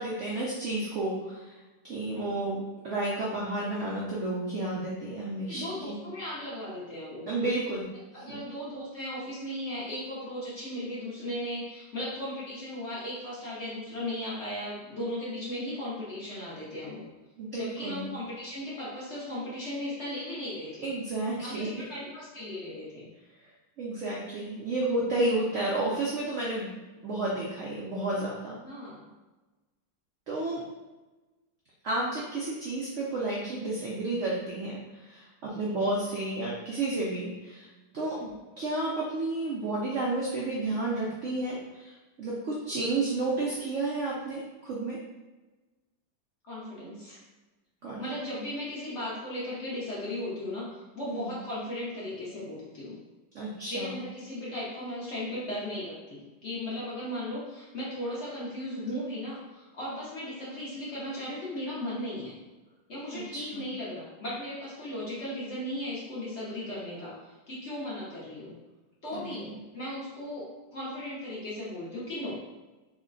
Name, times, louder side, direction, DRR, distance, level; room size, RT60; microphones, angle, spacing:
voice 1, 0.0-6.0 7.3-7.9 8.3-8.4 17.4-18.0 20.8-21.9 23.8-26.7 27.0-28.6 30.3-30.6 31.8-38.2 38.5-41.9 42.2-45.0 47.8-48.0 51.1-51.3 53.3-54.0 63.1-63.6 69.1-69.5, right 2 dB, 75° right, -5 dB, 0.6 m, -31 dB
voice 2, 5.5-7.3 8.1-17.0 17.5-20.9 21.4-23.1 28.6-29.1 38.2-38.3 46.4-47.2 48.0-53.0 53.7-62.4 62.9-68.5 69.0-70.5 70.7-72.4, left 1 dB, 50° left, -7 dB, 0.9 m, -36 dB
3.1 x 2.2 x 3.7 m, 1.2 s
omnidirectional pair, 1.9 m